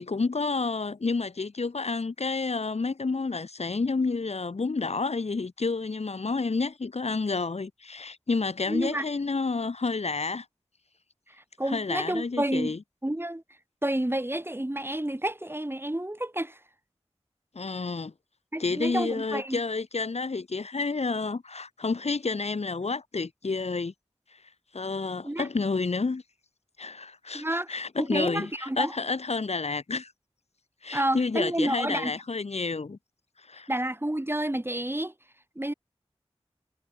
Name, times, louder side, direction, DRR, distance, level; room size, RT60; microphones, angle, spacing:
voice 1, 0.0-10.5 11.7-12.8 17.5-18.1 18.6-23.9 24.7-26.2 26.8-30.1 30.8-33.0 33.5-33.7, left 4 dB, 85° left, 2.6 m, -30 dB
voice 2, 8.7-9.0 11.6-12.8 13.0-13.4 13.8-16.6 18.5-19.6 25.2-25.5 27.3-28.9 30.9-32.1 33.7-35.1 35.6-35.7, right 1 dB, 20° right, 4.1 m, -30 dB
wide cardioid pair, 45°, 11 cm